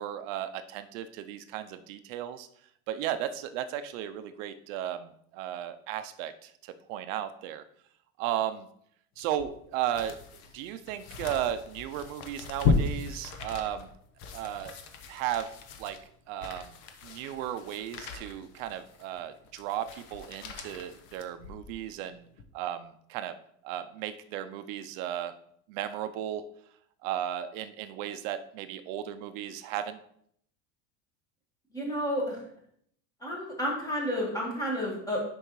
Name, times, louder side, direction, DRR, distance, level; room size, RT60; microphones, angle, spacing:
voice 1, 0.0-2.5 2.9-7.6 8.2-8.7 9.2-10.2 10.5-13.9 14.3-14.7 15.1-15.5 15.8-16.0 16.3-16.8 17.0-22.3 22.5-23.4 23.6-25.3 25.7-26.5 27.0-30.0, right 11 dB, 85° right, 10 dB, 0.5 m, -35 dB
sound 1, 9.2-21.8 22.3-22.4, left 4 dB, 65° left, 0.9 m, -36 dB
voice 2, 31.7-32.4 33.2-35.2, equal, 10° left, -2 dB, 1.6 m, -31 dB
6.5 x 5.4 x 3.1 m, 0.68 s
cardioid pair, 160°, 37 cm